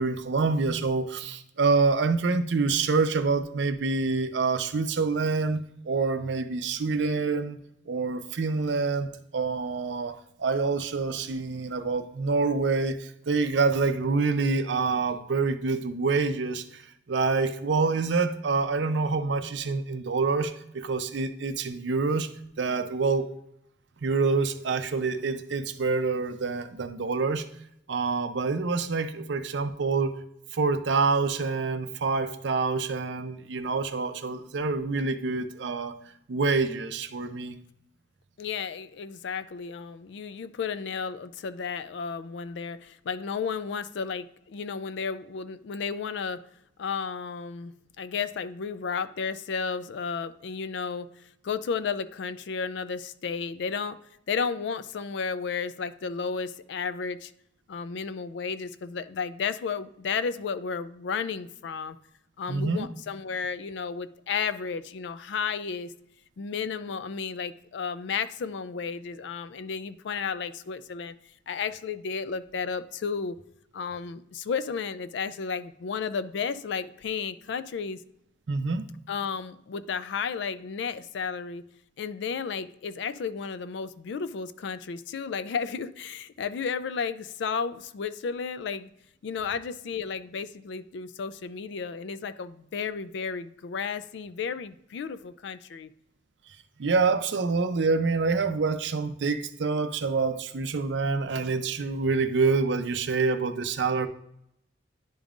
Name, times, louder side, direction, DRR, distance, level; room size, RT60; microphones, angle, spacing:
voice 1, 0.0-7.6 7.9-16.8 17.1-22.3 22.6-23.3 24.0-27.4 27.9-30.1 30.5-36.0 36.3-37.6 62.5-62.9 78.5-78.8 96.8-104.1, right 4 dB, 65° right, 10 dB, 0.5 m, -26 dB
voice 2, 38.4-46.5 46.8-54.0 54.3-57.3 57.7-62.0 62.4-65.9 66.4-71.1 71.5-73.4 73.7-78.0 79.1-81.6 82.0-88.9 89.2-95.9, left 5 dB, 65° left, 13 dB, 0.3 m, -33 dB
10.0 x 5.2 x 2.5 m, 0.77 s
head